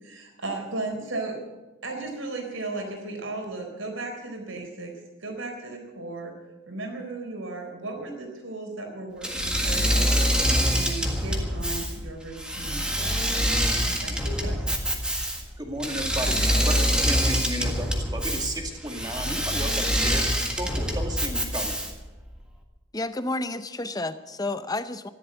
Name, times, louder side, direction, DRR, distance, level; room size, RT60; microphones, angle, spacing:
voice 1, 0.0-1.4 1.8-4.9 5.2-6.3 6.7-13.2 13.7-14.7, right 2 dB, 70° right, 3 dB, 4.1 m, -36 dB
Engine / Mechanisms, 9.2-22.1, equal, 5° right, 1.7 m, -25 dB
voice 2, 15.6-21.8, right 1 dB, 20° right, 3 dB, 2.2 m, -33 dB
voice 3, 22.9-25.1, left 2 dB, 20° left, 12 dB, 0.7 m, -30 dB
14.0 x 11.5 x 8.0 m, 1.1 s
head